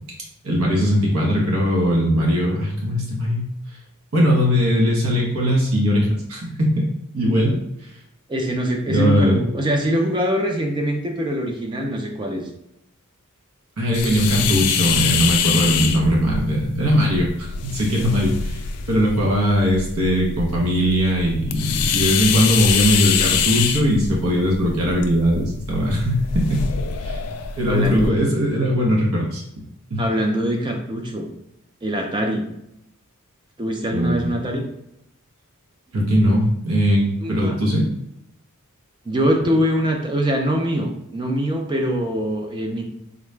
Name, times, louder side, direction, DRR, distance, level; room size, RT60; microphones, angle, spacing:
voice 1, 0.4-3.5 4.1-6.9 7.1-7.6 8.9-9.4 13.8-26.6 27.0-29.4 29.9-30.0 33.9-34.3 35.9-37.9, equal, 70° right, -2 dB, 0.8 m, -20 dB
voice 2, 8.3-12.4 27.7-28.1 30.0-31.3 31.8-32.5 33.6-34.6 37.2-37.6 39.1-42.9, equal, 20° right, 3 dB, 0.5 m, -23 dB
sound 1, 13.9-28.1, left 7 dB, 90° left, 0.4 m, -25 dB
3.8 x 2.2 x 3.2 m, 0.81 s
head